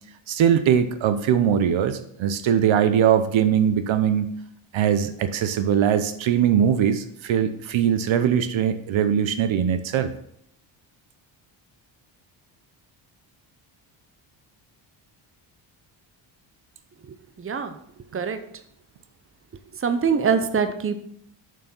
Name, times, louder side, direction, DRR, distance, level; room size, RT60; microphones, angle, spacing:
voice 1, 0.3-4.3 4.7-10.1, right 9 dB, 70° right, 10 dB, 0.9 m, -21 dB
voice 2, 17.4-17.8 18.1-18.4 19.8-21.0, right 6 dB, 25° right, 9 dB, 0.9 m, -23 dB
6.9 x 6.3 x 5.5 m, 0.71 s
cardioid pair, 85°, 49 cm